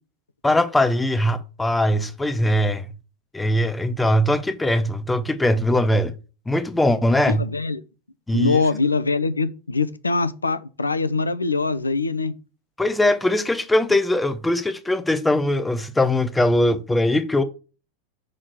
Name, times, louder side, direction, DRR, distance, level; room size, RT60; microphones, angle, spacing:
voice 1, 0.4-2.9 3.3-6.1 6.5-7.4 8.3-8.6 12.8-17.4, left 1 dB, 10° left, 0.7 m, -21 dB
voice 2, 7.3-7.8 8.3-12.3, left 4 dB, 80° left, 0.5 m, -23 dB
6.5 x 3.7 x 6.1 m
figure-of-eight pair, 90°, 0 cm